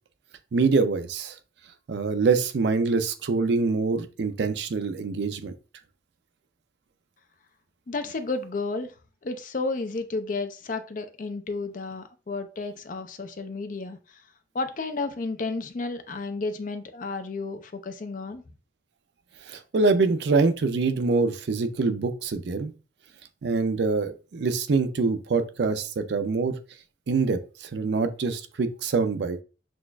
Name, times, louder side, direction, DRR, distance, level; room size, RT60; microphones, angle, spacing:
voice 1, 0.5-1.4 1.9-5.5 19.5-22.7 23.4-26.6 27.1-29.4, right 4 dB, 65° right, 10 dB, 0.4 m, -25 dB
voice 2, 7.9-8.9 9.2-14.0 14.5-18.4, left 3 dB, 45° left, 8 dB, 0.4 m, -32 dB
6.1 x 2.4 x 2.2 m, 0.34 s
head